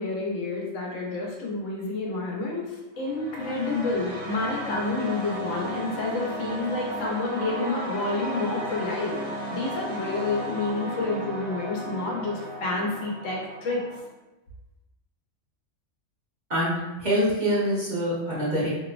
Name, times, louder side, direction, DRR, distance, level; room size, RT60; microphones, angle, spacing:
voice 1, 0.0-14.0, left 3 dB, 80° left, -2 dB, 1.0 m, -29 dB
sound 1, 3.0-14.0, right 1 dB, 70° right, 1.0 m, -35 dB
voice 2, 16.5-18.7, equal, 40° right, -9 dB, 0.9 m, -25 dB
2.8 x 2.0 x 2.4 m, 1.1 s
omnidirectional pair, 1.3 m